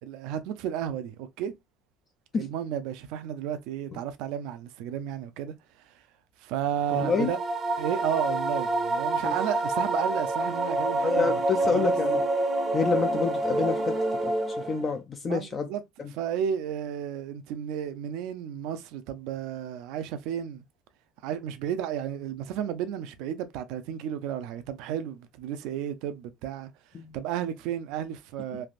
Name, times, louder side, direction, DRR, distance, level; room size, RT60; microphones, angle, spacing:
voice 1, 0.1-1.5 2.4-5.5 5.9-6.0 6.4-7.4 7.8-11.4 11.7-11.9 15.2-15.8 16.1-20.6 21.2-26.7 27.1-28.7, right 9 dB, 75° right, 0.5 m, -32 dB
sound 1, 6.8-15.0, right 2 dB, 25° right, 0.6 m, -27 dB
voice 2, 6.9-7.3 9.2-9.3 11.0-12.2 12.7-14.0 14.2-15.7 16.0-16.1 26.9-27.2, left 5 dB, 30° left, 0.3 m, -28 dB
3.3 x 2.5 x 2.4 m
cardioid pair, 160°, 0 cm